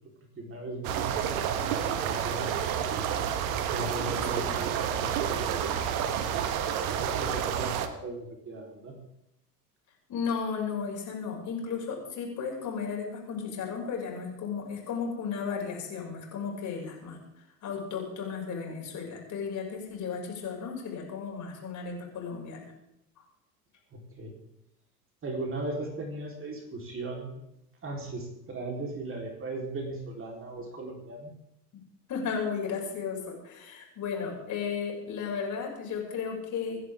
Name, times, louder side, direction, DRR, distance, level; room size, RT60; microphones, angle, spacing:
voice 1, 0.4-2.5 3.7-5.8 7.0-9.0 23.9-24.4 25.2-27.4 27.8-31.3, right 2 dB, 25° right, 1 dB, 4.1 m, -38 dB
sound 1, 0.8-7.9, right 8 dB, 60° right, 1.7 m, -29 dB
voice 2, 10.1-17.2 17.6-22.7 32.1-36.8, left 6 dB, 35° left, -1 dB, 6.5 m, -34 dB
27.0 x 11.0 x 3.7 m, 0.82 s
figure-of-eight pair, 85°, 48 cm